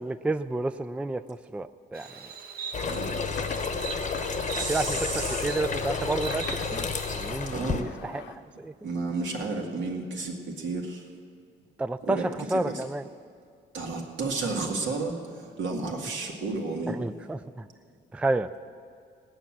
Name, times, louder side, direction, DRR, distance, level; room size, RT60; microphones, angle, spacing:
voice 1, 0.0-2.1 4.7-6.4 6.7-6.9 7.2-8.2 8.6-8.7 11.8-13.0 16.9-17.7 18.1-18.5, right 2 dB, 5° right, 12 dB, 0.3 m, -30 dB
Insect, 1.9-7.3, right 5 dB, 50° right, 1.4 m, -41 dB
sound 1, 2.7-7.8, left 5 dB, 35° left, 0.9 m, -31 dB
sound 2, 2.8-8.4, left 7 dB, 70° left, 0.9 m, -41 dB
voice 2, 4.5-5.5 7.5-7.9 8.8-11.1 12.0-12.8 13.7-17.0, right 3 dB, 70° right, 1 dB, 2.2 m, -32 dB
18.5 x 8.2 x 7.4 m, 2.3 s
cardioid pair, 90°, 20 cm